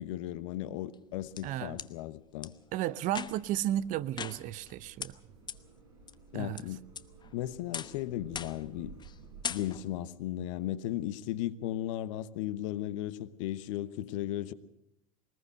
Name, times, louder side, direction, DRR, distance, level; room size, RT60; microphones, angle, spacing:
voice 1, 0.0-2.5 6.3-6.8 7.3-9.0 9.5-14.5, left 13 dB, 60° left, 1.1 m, -36 dB
sound 1, 0.9-1.9 2.4-2.5 3.1-3.6 4.2-4.7 5.0-5.1 5.5-5.6 6.1-6.6 7.0-7.3 7.7-8.0 8.4-8.7 9.0-9.2 9.4-10.0, left 7 dB, 25° left, 0.9 m, -40 dB
voice 2, 1.4-1.8 2.7-5.2 6.3-6.6, right 13 dB, 45° right, 0.7 m, -33 dB
sound 2, 3.1-9.6, right 5 dB, 70° right, 4.4 m, -54 dB
21.5 x 20.0 x 6.5 m
hypercardioid pair, 80°, 18 cm